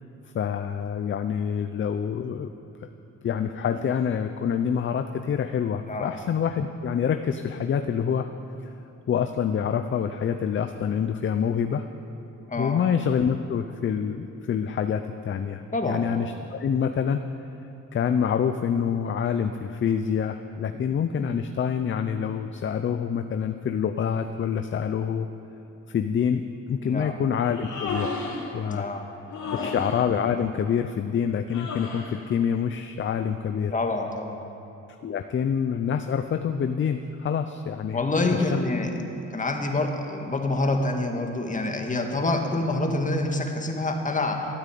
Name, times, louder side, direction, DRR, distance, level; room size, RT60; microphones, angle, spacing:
voice 1, 0.3-2.5 2.8-2.9 3.2-8.3 9.1-11.8 12.6-17.2 17.9-25.3 25.9-28.3 28.5-28.9 29.6-33.7 35.0-38.0 38.3-38.6, left 7 dB, 40° left, 8 dB, 0.6 m, -26 dB
voice 2, 12.5-12.8 15.7-16.0 26.8-27.1 28.7-29.0 29.4-29.7 33.7-34.4 37.9-38.9 39.3-44.5, left 2 dB, 25° left, 3 dB, 1.8 m, -27 dB
Human voice, 27.4-28.5 29.3-30.0 31.5-32.2, left 3 dB, 80° left, 2.7 m, -33 dB
13.5 x 8.9 x 8.5 m, 2.8 s
cardioid pair, 90°, 30 cm